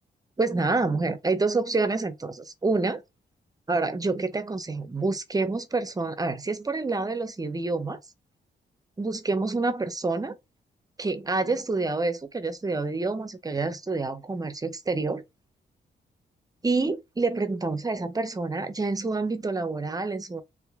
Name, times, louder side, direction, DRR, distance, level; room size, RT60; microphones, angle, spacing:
voice 1, 0.4-3.0 3.7-8.0 9.0-10.4 11.0-15.2 16.6-20.4, right 3 dB, 20° right, 0.5 m, -27 dB
3.3 x 2.9 x 3.4 m
cardioid pair, 100°, 18 cm